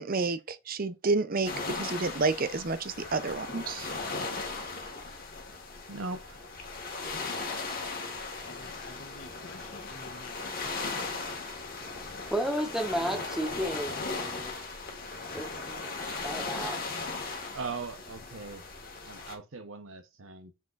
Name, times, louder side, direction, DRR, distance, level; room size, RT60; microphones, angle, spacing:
voice 1, 0.0-3.9, right 3 dB, 40° right, 0.6 m, -30 dB
sound 1, 1.4-19.3, left 3 dB, 45° left, 1.5 m, -37 dB
voice 2, 5.9-6.4 17.5-18.6 19.0-20.5, right 4 dB, 70° right, 0.9 m, -39 dB
voice 3, 8.4-10.6, left 3 dB, 65° left, 1.2 m, -49 dB
voice 4, 12.0-14.6 15.3-15.8 16.2-16.8, right 1 dB, ahead, 0.9 m, -33 dB
7.3 x 3.5 x 4.0 m
head